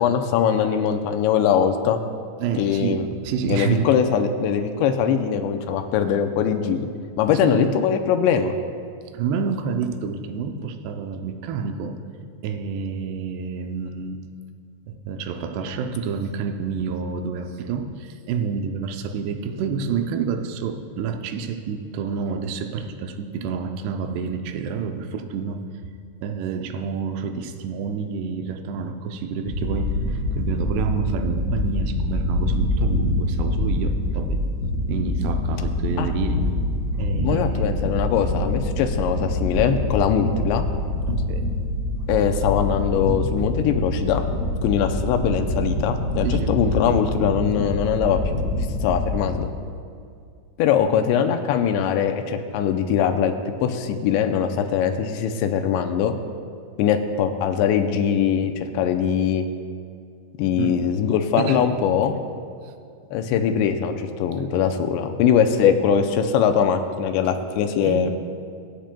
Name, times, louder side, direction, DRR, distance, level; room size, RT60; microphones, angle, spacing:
voice 1, 0.0-2.0 2.6-3.1 3.5-6.9 7.2-8.6 36.0-36.1 37.2-40.6 42.1-44.3 44.6-48.2 48.8-49.5 50.6-53.3 53.6-56.1 56.8-59.4 60.4-62.1 63.1-68.1, left 8 dB, 85° left, 6 dB, 2.8 m, -21 dB
voice 2, 2.4-3.9 7.4-7.6 9.1-12.0 12.4-14.3 14.9-25.6 26.2-34.4 34.9-36.5 37.0-37.8 41.1-41.5 46.2-46.6 60.6-60.8 61.4-61.7 62.6-62.7 65.7-65.8 67.8-68.1, right 6 dB, 80° right, 6 dB, 2.5 m, -28 dB
sound 1, 29.5-49.3, left 1 dB, 50° left, 1.1 m, -25 dB
23.5 x 8.9 x 2.2 m, 2.2 s
omnidirectional pair, 5.2 m